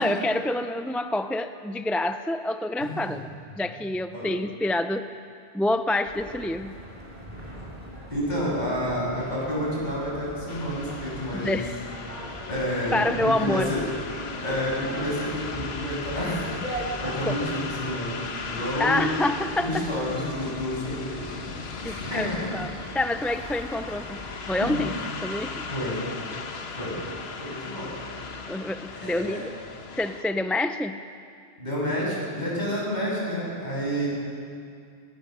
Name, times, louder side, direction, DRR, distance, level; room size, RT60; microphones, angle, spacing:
voice 1, 0.0-3.3 3.6-5.1 5.5-6.7 11.3-11.7 12.9-13.7 17.3-17.4 18.8-19.8 21.8-22.7 22.9-24.2 24.5-24.9 25.2-25.6 28.5-29.5 30.0-31.0, left 1 dB, ahead, 9 dB, 0.3 m, -27 dB
voice 2, 2.8-3.2 4.1-4.3 8.1-11.6 12.5-13.8 14.4-19.1 19.6-21.4 21.9-22.4 24.6-24.9 25.7-26.0 26.7-26.9 27.4-27.9 28.9-29.5 31.6-34.1, equal, 40° left, -5 dB, 7.4 m, -29 dB
sound 1, 6.0-24.4, right 1 dB, 35° right, 3.7 m, -41 dB
sound 2, 10.5-30.2, left 4 dB, 65° left, 1.4 m, -37 dB
21.5 x 19.5 x 6.7 m, 2.4 s
omnidirectional pair, 1.1 m